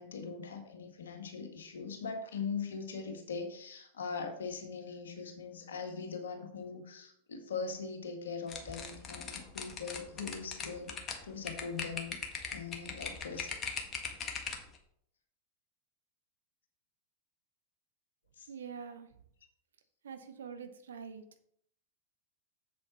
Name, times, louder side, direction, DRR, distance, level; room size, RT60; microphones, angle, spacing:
voice 1, 0.0-10.9 11.2-12.2 12.5-13.5 18.4-18.5, left 5 dB, 65° left, 4 dB, 1.9 m, -41 dB
sound 1, 8.5-14.8, left 5 dB, 30° left, 1.6 m, -39 dB
voice 2, 18.5-19.1 20.0-21.5, right 6 dB, 65° right, 8 dB, 1.0 m, -45 dB
7.7 x 7.6 x 4.3 m, 0.66 s
figure-of-eight pair, 90°, 0 cm